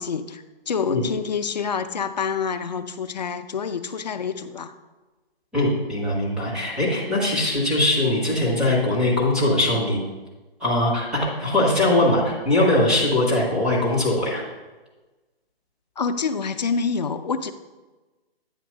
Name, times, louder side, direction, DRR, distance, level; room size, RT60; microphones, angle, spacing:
voice 1, 0.0-4.7 16.0-17.5, left 5 dB, 45° left, 9 dB, 0.5 m, -27 dB
voice 2, 5.5-10.0 10.6-14.4, left 1 dB, ahead, -7 dB, 0.7 m, -21 dB
8.8 x 3.0 x 6.2 m, 1.2 s
figure-of-eight pair, 150°, 31 cm